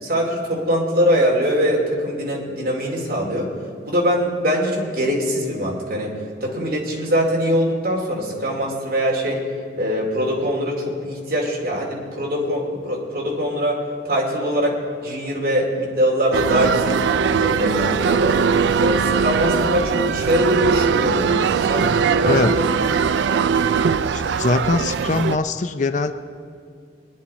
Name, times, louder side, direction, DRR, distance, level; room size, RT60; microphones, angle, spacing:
voice 1, 0.0-3.5 3.9-6.1 6.4-9.4 9.8-18.3 18.8-22.9, equal, 55° right, -2 dB, 2.6 m, -22 dB
sound 1, 16.3-25.4, right 6 dB, 75° right, 0.4 m, -20 dB
voice 2, 22.3-22.6 24.1-26.1, left 3 dB, 40° left, 10 dB, 0.4 m, -22 dB
21.5 x 10.0 x 4.2 m, 2.3 s
head